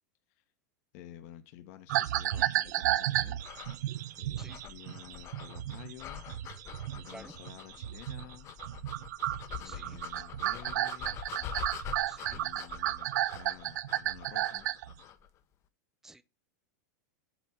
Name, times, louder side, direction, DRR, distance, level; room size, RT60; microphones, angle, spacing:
voice 1, 0.9-3.8 4.2-6.3 6.9-8.5 9.6-11.2 12.3-14.7, left 11 dB, 55° left, 1.1 m, -51 dB
sound 1, 1.9-8.3 8.6-14.9, right 14 dB, 75° right, 0.4 m, -33 dB
sound 2, 3.4-15.3, left 8 dB, 30° left, 0.7 m, -45 dB
voice 2, 9.6-10.0 12.1-12.4 16.0-16.2, right 2 dB, 5° right, 0.3 m, -50 dB
8.2 x 3.5 x 5.7 m
supercardioid pair, 145°, 10 cm